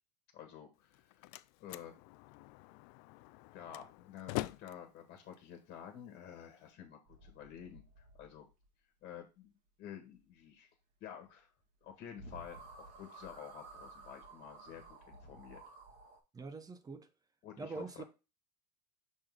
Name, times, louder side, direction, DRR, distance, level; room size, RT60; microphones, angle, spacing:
voice 1, 0.3-1.3 1.6-1.9 3.5-8.4 9.0-10.7 11.0-11.5 11.8-12.7 12.9-15.6 17.4-18.0, left 9 dB, 45° left, 1.6 m, -50 dB
Slam, 0.8-6.7, left 19 dB, 60° left, 0.4 m, -46 dB
sound 1, 7.1-8.7 11.8-11.9 12.2-16.2, right 2 dB, 55° right, 2.2 m, -54 dB
voice 2, 16.3-17.1 17.6-18.0, right 4 dB, 15° right, 0.7 m, -44 dB
6.3 x 3.8 x 4.8 m
supercardioid pair, 115°, 21 cm